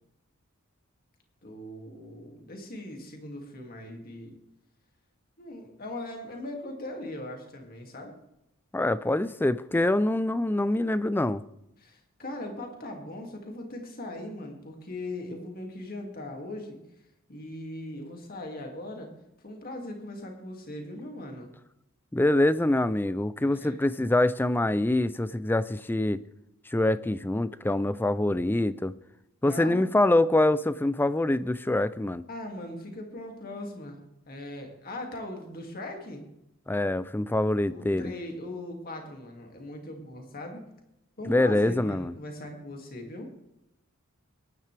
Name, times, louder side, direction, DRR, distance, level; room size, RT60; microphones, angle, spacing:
voice 1, 1.4-4.3 5.4-8.1 11.8-16.8 17.3-19.1 19.4-21.5 23.5-23.9 29.4-29.9 32.3-34.0 34.3-36.2 37.7-40.6 41.2-43.3, left 1 dB, 45° left, 2.4 m, -39 dB
voice 2, 8.7-11.4 22.1-26.2 26.7-28.9 29.4-32.2 36.7-38.1 41.3-42.1, left 1 dB, 10° left, 0.4 m, -25 dB
21.5 x 11.0 x 3.4 m
head